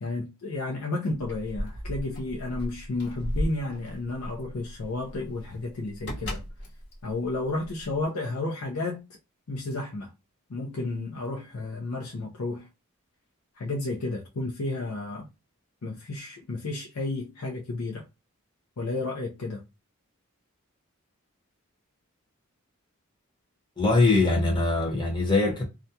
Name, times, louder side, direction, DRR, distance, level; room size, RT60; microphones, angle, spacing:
voice 1, 0.0-6.4 7.0-9.0 9.5-10.1 10.5-12.7 13.6-15.3 15.8-18.0 18.8-19.6, left 2 dB, 90° left, 0.6 m, -32 dB
Keys jangling, 1.1-8.0, equal, 50° left, 0.9 m, -36 dB
voice 2, 23.8-25.6, left 3 dB, 20° left, 0.9 m, -22 dB
2.4 x 2.2 x 2.7 m
head